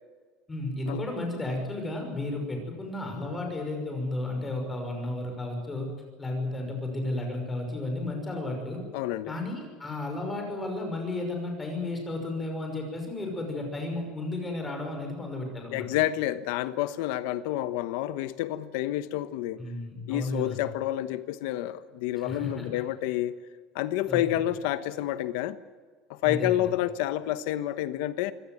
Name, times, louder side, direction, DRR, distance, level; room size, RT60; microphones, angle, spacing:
voice 1, 0.5-5.9 6.2-8.8 9.3-15.9 19.6-20.6 22.2-22.7 24.1-24.4 26.2-26.6, left 2 dB, 10° left, 5.8 m, -33 dB
voice 2, 8.9-9.3 15.7-19.6 20.1-23.3 23.7-25.6 26.1-28.3, left 14 dB, 70° left, 1.2 m, -29 dB
24.5 x 17.0 x 9.4 m
cardioid pair, 170°, 0 cm